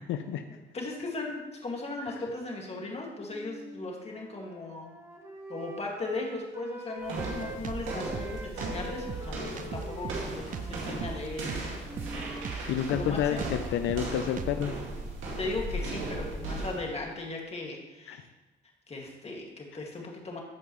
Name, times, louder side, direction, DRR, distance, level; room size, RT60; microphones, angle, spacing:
voice 1, 0.1-0.4 12.7-14.7 18.1-18.2, left 9 dB, 85° left, 8 dB, 0.5 m, -29 dB
voice 2, 0.7-4.9 5.5-12.2 12.9-13.4 15.4-18.2 18.9-20.4, left 2 dB, 30° left, 0 dB, 2.1 m, -37 dB
Wind instrument woodwind instrument, 2.7-7.6 7.9-13.2, equal, 15° right, 1.6 m, -45 dB
sound 1, 7.0-16.9, right 2 dB, 90° right, 2.2 m, -37 dB
Drum kit, 7.2-14.8, right 6 dB, 45° right, 0.6 m, -39 dB
14.0 x 5.3 x 3.1 m, 1.1 s
cardioid pair, 90°, 20 cm